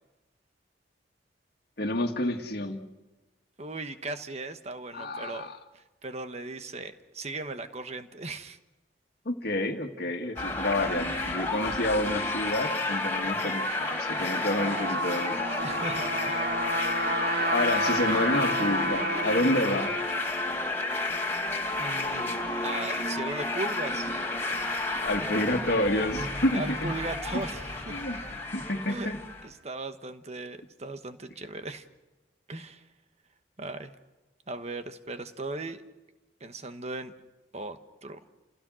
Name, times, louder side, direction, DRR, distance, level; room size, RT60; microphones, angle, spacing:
voice 1, 1.8-2.8 4.9-5.6 9.3-15.4 17.5-19.9 25.0-27.0 27.9-29.2, left 1 dB, 60° left, 4 dB, 1.9 m, -29 dB
voice 2, 3.6-5.5 5.7-8.6 13.2-13.5 14.1-14.8 15.6-16.5 21.8-24.1 26.5-28.0 28.9-29.1 29.4-31.8 32.5-32.8 33.6-33.9 34.5-35.8 36.4-37.1 37.5-38.2, right 2 dB, 40° right, 9 dB, 1.2 m, -38 dB
sound 1, 10.4-29.5, left 2 dB, 15° left, 3.6 m, -31 dB
Trumpet, 14.5-20.2, right 1 dB, 60° right, 1.9 m, -31 dB
29.5 x 16.5 x 6.3 m, 1.1 s
head